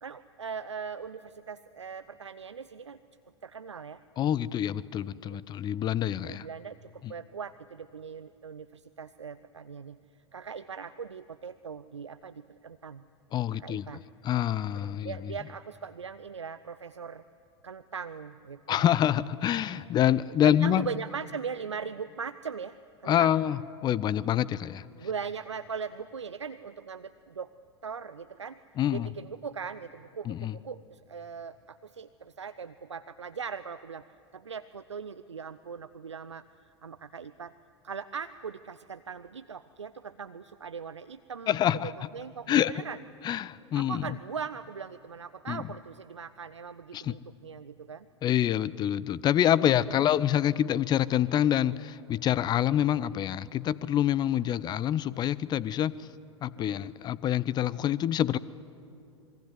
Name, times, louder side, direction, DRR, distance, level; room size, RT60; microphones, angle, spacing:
voice 1, 0.0-3.0 3.4-4.0 5.2-5.4 6.2-10.0 10.3-13.0 13.5-14.0 14.7-17.2 17.6-18.9 19.7-19.9 20.4-22.8 23.0-23.3 25.0-27.5 27.8-28.6 28.9-34.0 34.3-37.5 37.8-43.0 43.7-48.1 49.9-50.0 56.6-56.8, right 6 dB, 80° right, 14 dB, 0.6 m, -40 dB
voice 2, 4.2-6.5 7.0-7.1 13.3-13.9 14.2-15.3 18.7-20.9 23.1-24.8 28.8-29.1 30.3-30.6 41.5-41.9 42.5-42.7 43.2-44.1 45.5-45.6 46.9-47.1 48.2-55.9 56.4-58.4, left 11 dB, 30° left, 20 dB, 0.7 m, -26 dB
27.0 x 22.0 x 9.6 m, 2.7 s
figure-of-eight pair, 85°, 15 cm